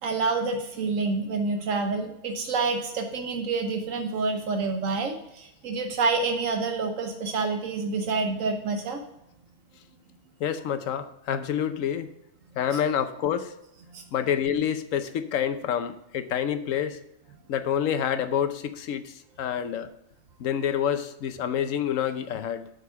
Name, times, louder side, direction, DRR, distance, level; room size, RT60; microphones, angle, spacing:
voice 1, 0.0-9.0 13.9-14.0, right 4 dB, 80° right, 5 dB, 1.2 m, -28 dB
voice 2, 10.4-12.1 12.6-13.6 14.1-17.0 17.5-19.9 20.4-22.7, left 9 dB, 80° left, 10 dB, 1.1 m, -28 dB
8.3 x 5.4 x 5.6 m, 0.84 s
omnidirectional pair, 1.3 m